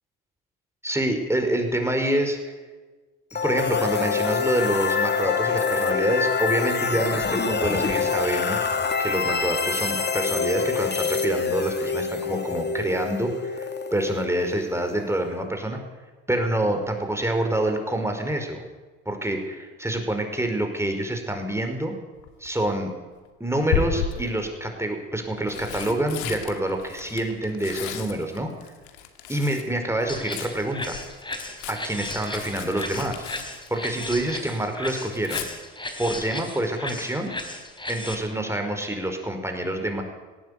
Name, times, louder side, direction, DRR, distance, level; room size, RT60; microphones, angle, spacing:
voice 1, 0.8-2.6 3.4-8.7 9.0-15.8 16.3-18.6 19.1-21.9 22.4-22.9 23.4-28.5 29.3-31.0 31.7-33.2 33.7-35.4 36.0-37.3 37.9-40.0, right 1 dB, 10° right, 4 dB, 5.1 m, -27 dB
sound 1, 3.3-15.1, left 5 dB, 35° left, 2.5 m, -26 dB
Tearing, 22.2-22.6 23.7-24.4 25.2-29.7 30.0-34.3 34.6-35.5 37.3-37.6 37.9-38.0, left 7 dB, 85° left, 2.2 m, -34 dB
sound 2, 30.1-38.1, left 2 dB, 15° left, 4.4 m, -35 dB
18.5 x 16.5 x 8.5 m, 1.3 s
hypercardioid pair, 60°, 31 cm